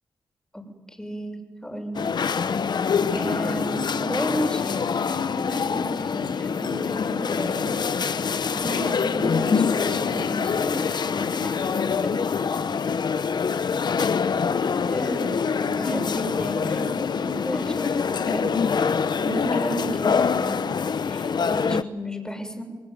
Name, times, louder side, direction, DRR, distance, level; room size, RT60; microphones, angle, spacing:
voice 1, 0.9-2.0 3.1-7.7 8.2-11.7 14.8-15.3 15.6-18.4 19.1-20.6 21.0-22.6, equal, 10° left, 4 dB, 6.8 m, -33 dB
sound 1, 1.9-21.8, left 6 dB, 65° left, 0.9 m, -25 dB
27.0 x 20.0 x 9.3 m, 1.3 s
cardioid pair, 55°, 8 cm